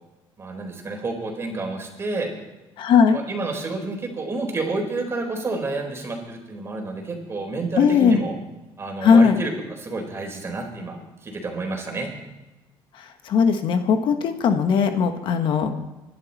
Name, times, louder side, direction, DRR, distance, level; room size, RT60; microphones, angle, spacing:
voice 1, 0.4-2.3 3.1-8.3 8.8-9.5 9.8-12.1, right 3 dB, 30° right, 2 dB, 4.2 m, -29 dB
voice 2, 2.8-3.2 7.8-8.2 9.0-9.4 12.9-15.7, left 6 dB, 65° left, 7 dB, 1.4 m, -18 dB
25.5 x 11.5 x 4.2 m, 1.1 s
cardioid pair, 125°, 9 cm